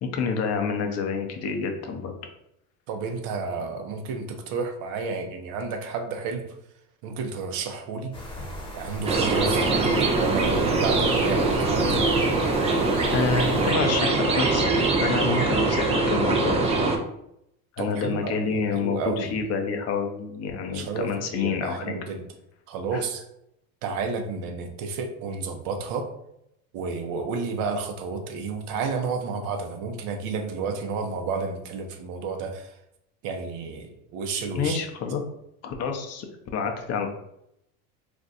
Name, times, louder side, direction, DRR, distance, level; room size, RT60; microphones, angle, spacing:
voice 1, 0.0-2.1 13.0-14.7 15.0-16.7 17.7-21.9 22.9-23.0 34.5-35.2 35.6-36.3 36.5-37.1, left 5 dB, 40° left, 4 dB, 0.6 m, -28 dB
voice 2, 2.9-6.5 7.0-8.2 8.7-12.0 17.8-19.4 20.5-22.2 22.7-23.2 23.8-26.1 26.7-32.7 33.2-34.8, right 4 dB, 55° right, 5 dB, 0.7 m, -31 dB
sound 1, 8.1-13.7, left 1 dB, 10° left, 0.9 m, -38 dB
sound 2, 9.1-17.0, right 3 dB, 15° right, 0.3 m, -22 dB
2.6 x 2.2 x 4.0 m, 0.79 s
supercardioid pair, 100°, 41 cm